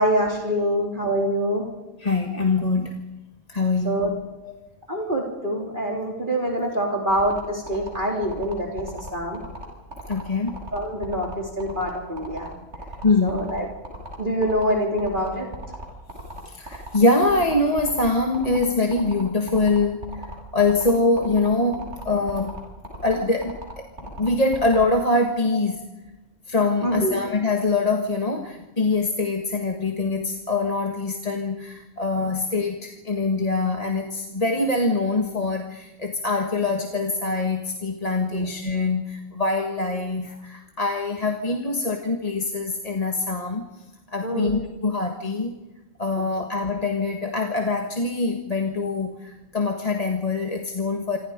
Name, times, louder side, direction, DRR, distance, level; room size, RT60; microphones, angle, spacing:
voice 1, 0.0-1.7 3.8-4.1 4.9-9.4 10.7-12.5 13.2-13.7 14.2-15.5 26.8-27.2 38.3-38.5 44.2-44.5, equal, 40° right, -1 dB, 3.9 m, -25 dB
voice 2, 2.0-3.0 3.5-4.1 4.4-4.5 10.1-10.6 13.0-13.4 16.4-20.2 20.5-22.6 23.0-25.8 26.5-43.6 44.1-45.5 46.0-51.2, left 3 dB, 30° left, 2 dB, 1.7 m, -24 dB
sound 1, 7.1-24.9, right 1 dB, 60° right, 7.8 m, -37 dB
27.0 x 26.0 x 5.2 m, 1.1 s
omnidirectional pair, 1.3 m